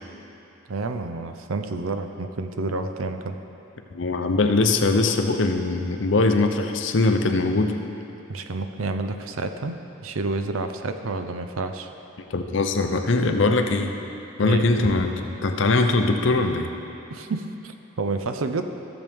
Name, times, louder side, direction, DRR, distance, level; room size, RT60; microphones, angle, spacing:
voice 1, 0.7-3.4 8.3-9.8 10.0-11.9 14.4-14.7 17.1-18.6, right 3 dB, 85° right, 7 dB, 0.6 m, -29 dB
voice 2, 3.9-7.8 12.3-14.0 14.4-16.8, left 3 dB, 65° left, 5 dB, 0.7 m, -21 dB
15.0 x 7.1 x 3.5 m, 2.9 s
head